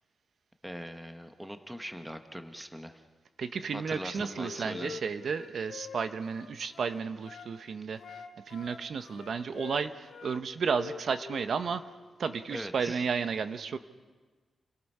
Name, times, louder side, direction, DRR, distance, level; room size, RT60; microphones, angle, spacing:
voice 1, 0.6-3.0 3.7-5.0 12.5-13.0, equal, 5° right, 7 dB, 1.0 m, -41 dB
voice 2, 3.4-11.8 12.2-13.8, right 5 dB, 60° right, 10 dB, 0.8 m, -33 dB
Wind instrument woodwind instrument, 3.8-7.5 8.0-10.4 10.7-12.0, left 6 dB, 80° left, 2.5 m, -46 dB
29.0 x 17.5 x 5.4 m, 1.4 s
wide cardioid pair, 140°, 0 cm